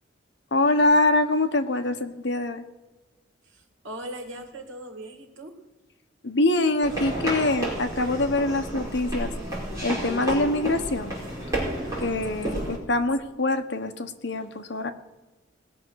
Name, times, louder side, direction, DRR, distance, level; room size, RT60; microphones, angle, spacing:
voice 1, 0.5-2.6 6.2-9.3 9.8-11.1 12.0-14.9, left 2 dB, 65° left, 7 dB, 1.0 m, -24 dB
voice 2, 3.4-5.6, right 1 dB, 90° right, 5 dB, 2.0 m, -39 dB
sound 1, 6.8-12.8, right 1 dB, 15° right, 5.0 m, -31 dB
19.5 x 6.6 x 6.4 m, 1.2 s
head